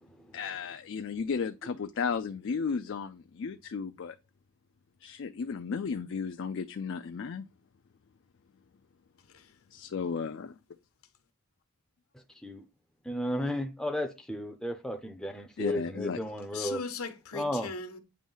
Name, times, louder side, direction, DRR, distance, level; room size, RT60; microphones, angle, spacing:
voice 1, 0.3-4.2 5.0-7.5 9.7-10.6 15.6-16.2, left 5 dB, 55° left, 0.4 m, -34 dB
voice 2, 13.0-16.8 17.3-17.7, left 1 dB, 5° left, 0.5 m, -33 dB
voice 3, 16.5-18.0, left 4 dB, 80° left, 1.0 m, -38 dB
8.6 x 3.1 x 5.5 m
head